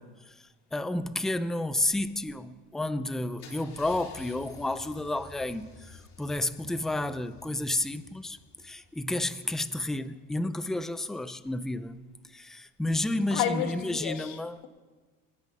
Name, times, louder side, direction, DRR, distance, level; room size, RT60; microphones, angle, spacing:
voice 1, 0.0-8.4 8.6-14.6, left 2 dB, ahead, 0.4 m, -31 dB
Car / Engine starting / Idling, 3.4-9.2, left 4 dB, 45° left, 3.2 m, -52 dB
voice 2, 13.3-14.7, left 10 dB, 80° left, 2.0 m, -31 dB
25.0 x 9.8 x 5.4 m
cardioid pair, 140°, 39 cm